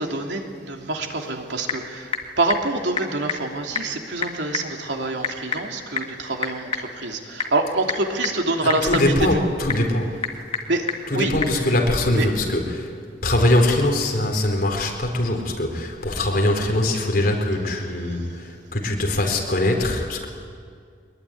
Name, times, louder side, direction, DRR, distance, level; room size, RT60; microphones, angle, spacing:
voice 1, 0.0-2.1 2.4-9.4 10.7-10.8 11.1-11.3 12.1-12.3 17.7-17.9, right 2 dB, 85° right, 2 dB, 3.0 m, -26 dB
Typing / Telephone, 1.1-11.6, left 4 dB, 35° left, 2.2 m, -32 dB
voice 2, 8.6-10.2 11.1-12.9 13.2-20.2, left 1 dB, 55° left, 2 dB, 4.6 m, -22 dB
23.5 x 21.5 x 9.7 m, 2.1 s
head